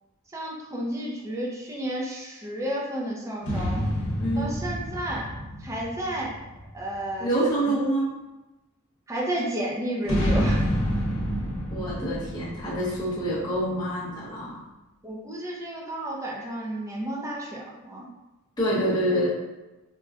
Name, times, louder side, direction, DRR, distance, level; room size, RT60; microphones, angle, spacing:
voice 1, 0.3-3.8 4.4-6.4 6.7-7.3 9.1-10.6 15.0-18.1, right 1 dB, 15° right, -2 dB, 0.4 m, -32 dB
sound 1, 3.4-7.1 10.0-13.8, equal, 75° left, 0.8 m, -28 dB
voice 2, 4.2-4.5 7.2-8.1 11.7-14.6 18.6-19.3, right 1 dB, 20° left, -9 dB, 0.7 m, -26 dB
3.8 x 2.2 x 2.3 m, 1.1 s
head